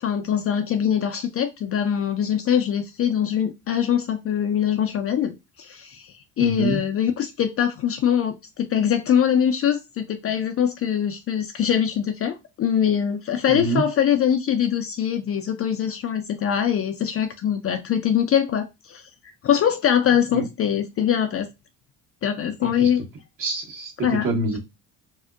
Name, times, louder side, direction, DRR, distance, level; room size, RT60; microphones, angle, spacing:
voice 1, 0.0-6.1 6.4-19.0 19.4-21.5 22.2-23.0 24.0-24.3, left 9 dB, 35° left, 0.4 m, -23 dB
voice 2, 6.4-6.8 13.5-13.8 20.3-20.5 22.6-22.9 23.4-23.9 24.2-24.6, right 3 dB, 50° right, 1.2 m, -26 dB
2.5 x 2.1 x 2.4 m
supercardioid pair, 70°, 41 cm